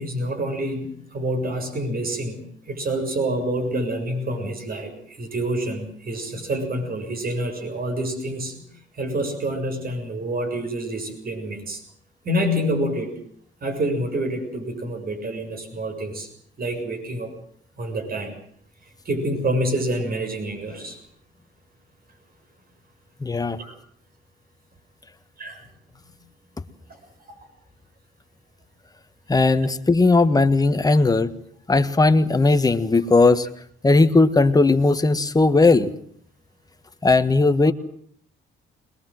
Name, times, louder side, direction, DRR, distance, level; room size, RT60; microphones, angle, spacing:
voice 1, 0.0-2.4 2.7-8.7 9.0-11.8 12.2-13.1 13.6-16.3 16.6-17.3 17.8-18.3 19.1-21.0 23.6-23.8 25.4-25.7, right 1 dB, 50° right, 5 dB, 7.0 m, -27 dB
voice 2, 23.2-23.6 29.3-31.3 31.7-33.5 33.8-35.9 37.0-37.7, left 3 dB, 20° left, 9 dB, 1.5 m, -17 dB
21.0 x 21.0 x 7.8 m, 0.63 s
cardioid pair, 90°, 20 cm